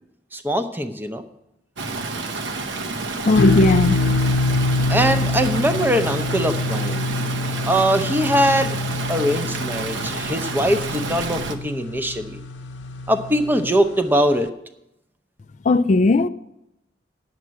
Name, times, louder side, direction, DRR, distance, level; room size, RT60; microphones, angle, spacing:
voice 1, 0.3-1.2 4.9-7.1 7.6-8.8 9.1-12.4 13.1-14.5, equal, 10° right, 0.7 m, -21 dB
Stream, 1.8-11.6, right 3 dB, 70° right, 0.9 m, -29 dB
voice 2, 3.3-4.0 15.7-16.3, left 3 dB, 40° left, 0.3 m, -16 dB
sound 1, 3.4-13.9, left 2 dB, 65° left, 0.7 m, -25 dB
9.3 x 7.3 x 7.5 m
head